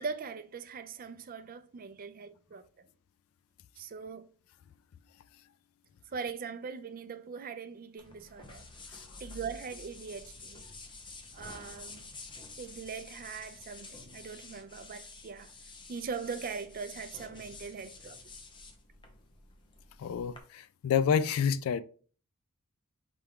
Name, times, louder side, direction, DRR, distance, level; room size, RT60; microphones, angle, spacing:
voice 1, 0.0-2.6 3.8-4.3 6.1-8.7 9.2-10.7 11.3-12.1 12.6-15.5 15.9-18.2, right 5 dB, 40° right, 0.4 m, -41 dB
sound 1, 8.0-20.4, left 3 dB, 20° left, 0.7 m, -49 dB
voice 2, 20.0-21.8, left 7 dB, 65° left, 0.3 m, -28 dB
4.3 x 3.5 x 3.5 m
head